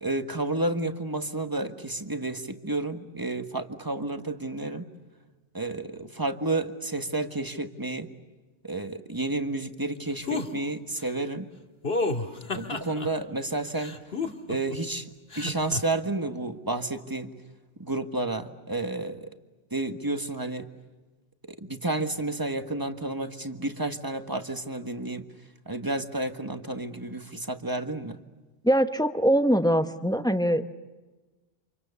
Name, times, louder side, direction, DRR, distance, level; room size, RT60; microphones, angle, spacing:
voice 1, 0.0-4.9 5.5-8.1 8.6-11.5 12.5-14.0 14.5-15.1 15.3-17.3 17.8-19.3 19.7-20.7 21.6-25.3 25.7-28.2, right 2 dB, 20° right, 7 dB, 1.5 m, -31 dB
sound 1, 10.3-10.5 11.8-13.1 13.8-14.8 15.3-15.8, left 3 dB, 55° left, 2.2 m, -30 dB
voice 2, 28.6-30.6, equal, 5° left, 8 dB, 1.0 m, -22 dB
29.5 x 27.5 x 7.0 m, 1.2 s
omnidirectional pair, 1.2 m